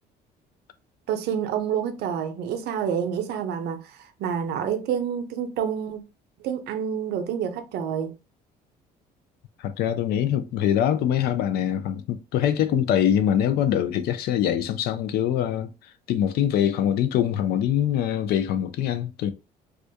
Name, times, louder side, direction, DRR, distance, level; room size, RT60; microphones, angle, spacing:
voice 1, 1.1-6.0 6.4-8.1, right 8 dB, 75° right, 0.5 m, -28 dB
voice 2, 9.6-19.3, left 10 dB, 70° left, 0.4 m, -24 dB
2.4 x 2.2 x 2.7 m
cardioid pair, 110°, 17 cm